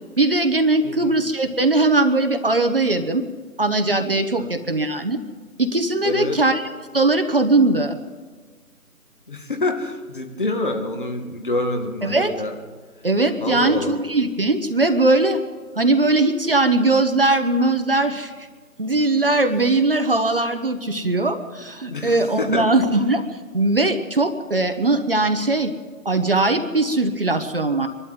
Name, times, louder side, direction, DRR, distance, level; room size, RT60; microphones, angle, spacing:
voice 1, 0.2-3.2 3.6-5.2 5.6-6.6 6.9-8.0 12.0-12.4 13.0-15.4 15.8-18.3 18.8-23.2 23.5-25.7 26.0-27.9, right 2 dB, 35° right, 7 dB, 1.2 m, -20 dB
voice 2, 0.8-1.2 4.4-4.5 6.0-6.4 9.3-12.5 13.4-14.0 21.9-22.7, left 2 dB, 35° left, 4 dB, 2.0 m, -27 dB
23.5 x 12.5 x 9.2 m, 1.4 s
figure-of-eight pair, 160°, 46 cm